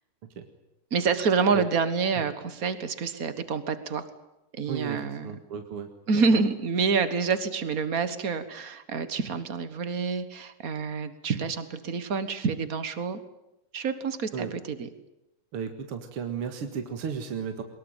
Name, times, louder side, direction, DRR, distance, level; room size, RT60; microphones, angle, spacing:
voice 1, 0.9-4.0 4.5-5.4 6.1-13.2 13.7-14.9, right 5 dB, 70° right, 12 dB, 0.8 m, -27 dB
voice 2, 4.7-5.9 6.1-6.2 14.3-14.5 15.5-17.6, right 6 dB, 50° right, 6 dB, 2.2 m, -34 dB
23.5 x 21.5 x 9.0 m, 0.90 s
omnidirectional pair, 3.8 m